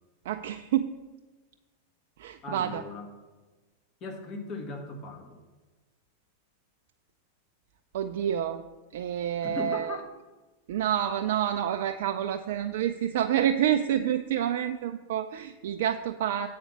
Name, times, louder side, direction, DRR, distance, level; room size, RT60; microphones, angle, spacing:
voice 1, 0.3-0.9 2.2-2.8 7.9-8.6 8.9-10.0 10.7-16.5, right 10 dB, 60° right, 7 dB, 0.3 m, -28 dB
voice 2, 2.4-3.1 4.0-5.4 9.4-10.1, left 3 dB, 35° left, 2 dB, 1.6 m, -38 dB
8.3 x 4.3 x 7.2 m, 1.2 s
figure-of-eight pair, 90°, 0 cm